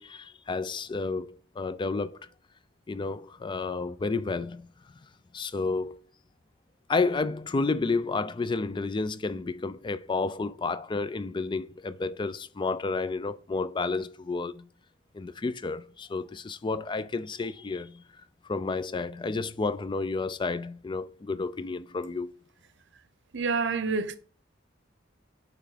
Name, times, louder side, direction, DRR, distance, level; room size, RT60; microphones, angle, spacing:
voice 1, 0.0-2.2 2.9-4.7 5.3-6.0 6.9-14.7 15.1-18.0 18.5-22.3, left 3 dB, 25° left, 0.4 m, -31 dB
voice 2, 23.3-24.2, right 4 dB, 65° right, 0.7 m, -27 dB
5.8 x 3.6 x 4.9 m
head